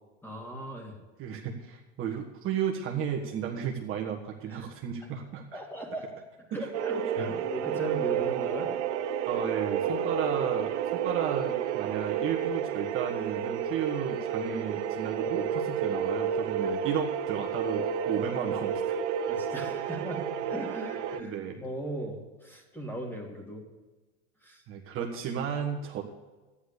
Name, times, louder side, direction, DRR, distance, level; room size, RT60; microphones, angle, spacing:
voice 1, 0.2-1.0 4.5-4.7 5.5-6.1 6.5-8.7 19.3-23.7 24.4-24.6 25.0-25.1, right 1 dB, 5° left, 0 dB, 2.7 m, -38 dB
voice 2, 1.2-5.6 7.2-7.3 9.2-19.0 21.2-21.6 24.7-26.0, right 8 dB, 35° right, 0 dB, 1.6 m, -33 dB
sound 1, 6.7-21.2, right 7 dB, 75° right, 1.1 m, -31 dB
13.0 x 10.0 x 6.8 m, 1.2 s
supercardioid pair, 120°, 36 cm